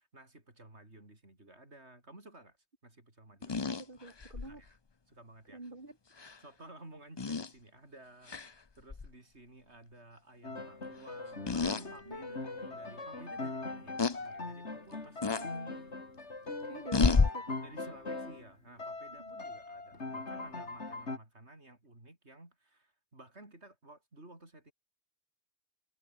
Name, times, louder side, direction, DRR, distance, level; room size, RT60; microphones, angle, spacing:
voice 1, 0.0-2.6 2.8-3.6 4.4-4.7 5.1-5.6 6.4-15.5 17.6-24.7, right 2 dB, 75° right, 6.0 m, -54 dB
sound 1, 3.4-4.5 6.2-6.3 7.2-7.5 8.3-8.5 8.9-9.1 11.5-11.8 12.4-12.5 14.0-14.2 15.2-15.5 16.9-17.3, left 4 dB, 25° left, 0.7 m, -29 dB
voice 2, 3.6-4.6 5.5-6.3 12.0-12.4 15.3-15.8 16.6-17.6 19.2-19.3, right 2 dB, 50° right, 3.3 m, -48 dB
Piano, 10.4-18.5 18.8-21.2, left 3 dB, 85° left, 3.7 m, -41 dB
omnidirectional pair, 1.1 m